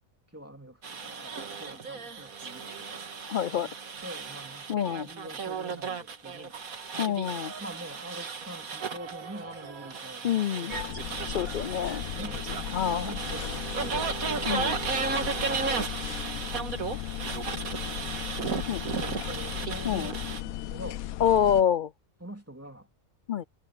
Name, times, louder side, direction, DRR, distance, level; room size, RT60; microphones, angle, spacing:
voice 1, 0.3-3.0 3.6-6.6 7.6-12.5 12.9-15.0 15.5-16.5 17.6-18.3 18.8-21.0 22.2-22.9, right 1 dB, 10° right, 2.8 m, -45 dB
sound 1, 0.8-20.4, right 5 dB, 85° right, 2.1 m, -35 dB
voice 2, 3.3-3.7 4.7-5.1 7.0-7.5 10.2-10.7 11.3-12.0 12.7-13.1 14.5-14.7 18.7-18.8 19.9-20.1 21.2-21.9 23.3-23.4, left 9 dB, 60° left, 0.5 m, -26 dB
sound 2, 10.7-21.6, left 13 dB, 85° left, 1.1 m, -37 dB
omnidirectional pair, 1.5 m